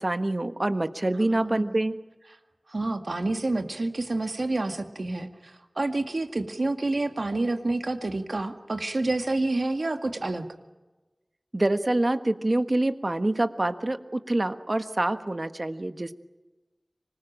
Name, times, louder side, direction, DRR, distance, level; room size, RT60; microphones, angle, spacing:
voice 1, 0.0-2.0 11.5-16.1, right 1 dB, 50° right, 9 dB, 1.4 m, -26 dB
voice 2, 1.2-1.8 2.7-10.5, right 2 dB, 80° right, 6 dB, 2.1 m, -28 dB
25.5 x 20.5 x 8.9 m, 1.2 s
wide cardioid pair, 45°, 0 cm